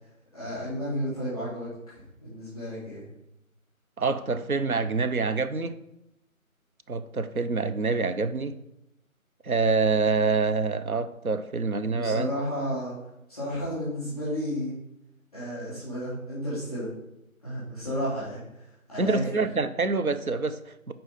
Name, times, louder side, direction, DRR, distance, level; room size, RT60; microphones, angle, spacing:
voice 1, 0.3-3.0 11.9-12.9 13.3-14.7 15.3-16.9 17.4-18.4 18.9-19.4, equal, 5° left, 2.7 m, -32 dB
voice 2, 4.0-5.8 6.9-8.6 9.4-12.3 19.0-20.9, right 4 dB, 85° right, 0.8 m, -26 dB
5.4 x 4.3 x 5.4 m
figure-of-eight pair, 170°, 42 cm